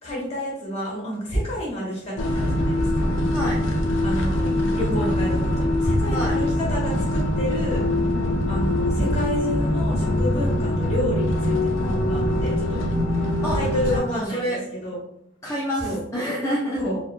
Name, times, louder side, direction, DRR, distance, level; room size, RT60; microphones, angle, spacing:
voice 1, 0.0-3.1 4.0-7.8 8.5-12.8 13.5-15.0 15.8-16.0 16.8-17.0, equal, 35° left, -4 dB, 1.3 m, -29 dB
sound 1, 2.2-14.0, left 1 dB, 70° left, 0.5 m, -23 dB
voice 2, 13.8-14.6 15.4-16.8, equal, 15° left, -6 dB, 0.4 m, -27 dB
3.5 x 2.1 x 2.4 m, 0.75 s
head